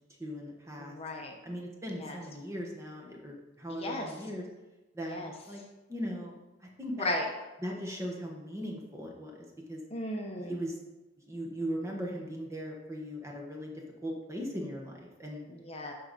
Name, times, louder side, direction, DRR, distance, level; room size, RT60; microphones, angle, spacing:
voice 1, 0.2-1.0 1.4-4.4 4.9-5.2 5.5-5.6 5.9-6.3 6.8-7.1 7.6-9.8 10.5-10.7 11.3-15.4, equal, 15° right, -1 dB, 1.3 m, -38 dB
voice 2, 0.8-1.4 1.9-2.2 3.7-4.1 5.0-5.3 7.0-7.3 9.9-10.6 15.5-15.9, left 1 dB, 30° left, 1 dB, 0.9 m, -35 dB
12.0 x 4.8 x 4.2 m, 1.1 s
head